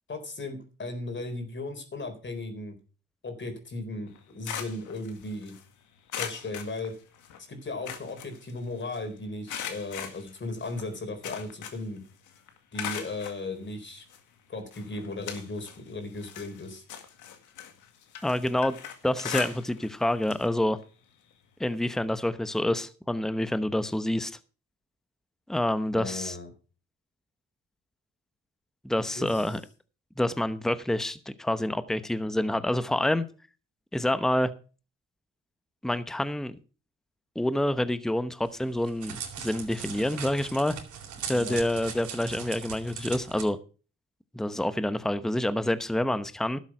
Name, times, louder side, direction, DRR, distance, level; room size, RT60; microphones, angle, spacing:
voice 1, 0.1-2.8 3.2-5.5 6.2-6.9 7.5-12.0 12.7-14.0 14.5-16.8 25.9-26.5 29.2-29.4 41.3-41.6, left 2 dB, 40° left, 3.9 m, -36 dB
sound 1, 4.1-5.6 6.1-7.4 7.7-9.0 9.5-12.0 12.3-13.4 14.1-14.2 14.7-15.8 16.1-20.0 20.2-20.5 20.8-20.9 22.1-22.2, left 8 dB, 80° left, 2.0 m, -39 dB
voice 2, 18.2-18.8 19.0-20.8 21.6-24.3 25.5-26.4 28.8-29.6 30.2-33.2 33.9-34.5 35.8-36.6 37.3-40.8 41.3-43.6 44.3-46.6, left 1 dB, ahead, 0.9 m, -27 dB
Crackle, 38.4-43.4, right 7 dB, 75° right, 3.6 m, -39 dB
12.0 x 7.4 x 6.0 m
cardioid pair, 90°, 30 cm